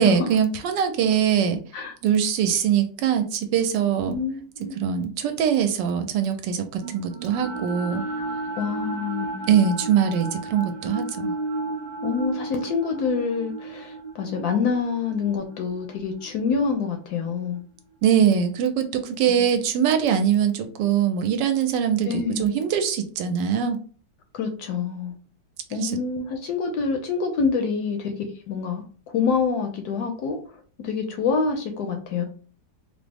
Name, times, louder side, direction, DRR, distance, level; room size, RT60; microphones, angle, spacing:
voice 1, 0.0-1.6 2.0-4.2 4.8-8.0 9.5-11.3 18.0-22.1 22.4-23.8 25.8-25.9, right 8 dB, 80° right, 7 dB, 1.2 m, -22 dB
voice 2, 4.1-4.8 8.6-9.4 12.0-17.6 19.3-19.4 22.1-22.5 24.3-25.1 25.7-32.2, left 5 dB, 70° left, 5 dB, 1.0 m, -27 dB
sound 1, 6.8-17.0, right 2 dB, 55° right, 0.9 m, -33 dB
3.5 x 2.0 x 3.3 m, 0.40 s
omnidirectional pair, 1.9 m